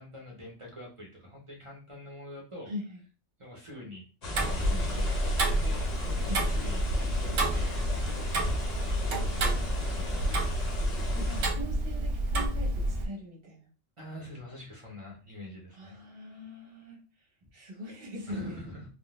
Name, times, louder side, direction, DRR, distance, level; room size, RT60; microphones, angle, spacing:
voice 1, 0.0-2.7 3.4-4.1 4.4-7.8 9.7-10.4 14.0-16.0 17.4-17.5 18.3-18.9, left 1 dB, 30° right, -2 dB, 0.8 m, -45 dB
voice 2, 2.7-3.0 6.2-6.4 8.6-9.8 11.1-13.7 15.7-18.7, equal, 50° right, -1 dB, 1.2 m, -42 dB
sound 1, 4.2-11.5, left 2 dB, 40° left, 0.7 m, -37 dB
Tick-tock, 4.3-13.1, right 1 dB, 70° right, 1.0 m, -29 dB
3.7 x 2.3 x 2.4 m, 0.35 s
omnidirectional pair, 1.3 m